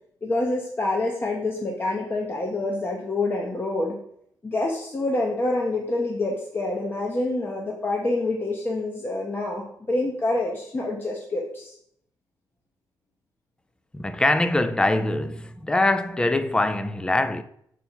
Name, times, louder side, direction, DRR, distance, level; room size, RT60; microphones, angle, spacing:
voice 1, 0.2-4.0 4.4-11.8, left 2 dB, 30° left, 1.0 m, -27 dB
voice 2, 13.9-17.4, left 2 dB, 10° left, 0.4 m, -23 dB
5.5 x 4.6 x 4.5 m
cardioid pair, 95°, 8 cm